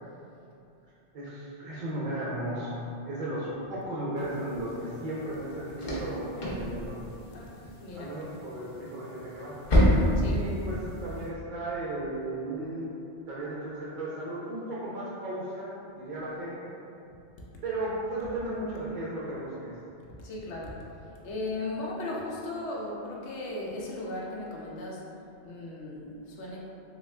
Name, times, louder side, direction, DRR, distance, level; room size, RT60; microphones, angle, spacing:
voice 1, 1.1-7.0 8.0-9.6 10.3-12.9 13.3-16.8 17.6-19.8, right 1 dB, 55° right, -7 dB, 0.6 m, -35 dB
sound 1, 4.2-11.3, equal, 45° left, 0.7 m, -30 dB
voice 2, 7.2-8.3 10.2-10.5 20.2-20.8 21.2-25.1 25.4-26.6, left 2 dB, 75° left, -3 dB, 0.9 m, -37 dB
3.4 x 2.3 x 3.2 m, 2.7 s
omnidirectional pair, 1.2 m